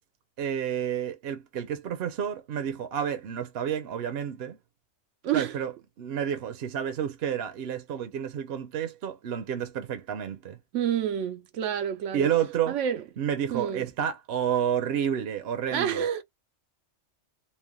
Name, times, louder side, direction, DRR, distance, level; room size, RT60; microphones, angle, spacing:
voice 1, 0.4-4.6 5.3-5.7 6.0-10.6 12.1-12.8 13.2-16.0, right 9 dB, 60° right, 0.8 m, -30 dB
voice 2, 5.2-5.5 10.7-12.3 12.7-13.0 13.5-13.9 15.7-16.2, right 9 dB, 85° right, 0.9 m, -28 dB
3.2 x 2.1 x 2.2 m
omnidirectional pair, 1.2 m